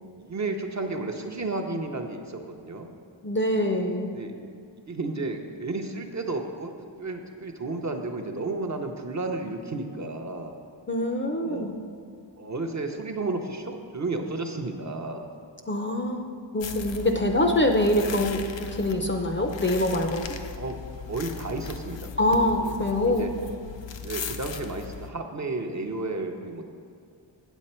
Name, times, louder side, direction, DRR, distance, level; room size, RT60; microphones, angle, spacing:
voice 1, 0.2-2.9 4.1-4.3 4.9-6.7 7.0-10.5 11.4-11.7 12.4-15.3 20.5-20.8 21.1-22.7 23.1-23.3 24.0-26.7, right 3 dB, 35° right, 3 dB, 0.7 m, -32 dB
voice 2, 3.2-4.1 10.9-11.7 15.7-16.2 16.5-20.3 22.2-23.3, left 1 dB, 25° left, 3 dB, 0.5 m, -24 dB
sound 1, 16.6-25.1, left 7 dB, 70° left, 0.6 m, -38 dB
8.2 x 8.1 x 4.3 m, 2.3 s
wide cardioid pair, 125°, 47 cm